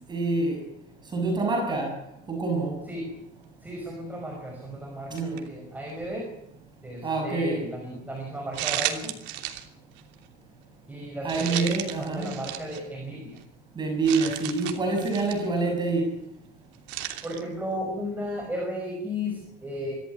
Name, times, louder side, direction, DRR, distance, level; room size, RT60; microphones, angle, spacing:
voice 1, 0.1-0.6 1.1-1.9 2.3-2.8 5.1-5.4 7.0-7.6 11.2-12.4 13.7-16.0, right 3 dB, 25° right, 2 dB, 6.4 m, -26 dB
voice 2, 3.6-6.3 6.8-9.1 10.9-13.4 17.2-20.0, equal, 10° right, 1 dB, 5.4 m, -34 dB
sound 1, 5.2-5.5 6.0-6.1 8.5-9.7 10.0-10.1 11.3-12.8 13.4-13.5 14.0-15.5 16.9-17.4, right 14 dB, 85° right, 3.0 m, -33 dB
24.0 x 15.5 x 9.7 m, 0.79 s
cardioid pair, 155°, 18 cm